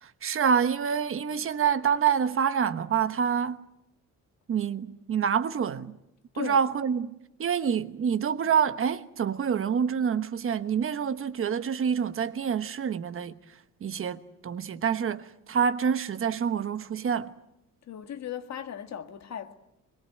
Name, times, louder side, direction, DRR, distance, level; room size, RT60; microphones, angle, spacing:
voice 1, 0.0-3.6 4.5-6.0 6.4-13.4 13.8-17.3, right 7 dB, 40° right, 1.2 m, -27 dB
voice 2, 17.9-19.5, left 9 dB, 60° left, 2.0 m, -37 dB
25.0 x 22.0 x 9.3 m
cardioid pair, 155°, 31 cm